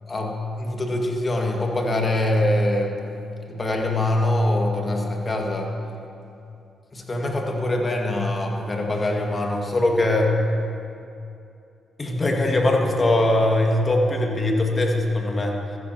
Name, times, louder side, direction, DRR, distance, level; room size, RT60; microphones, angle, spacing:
voice 1, 0.1-2.9 3.5-5.7 6.9-10.3 12.0-15.6, left 1 dB, 35° left, 1 dB, 2.1 m, -22 dB
15.0 x 13.5 x 3.0 m, 2.6 s
hypercardioid pair, 40°, 0 cm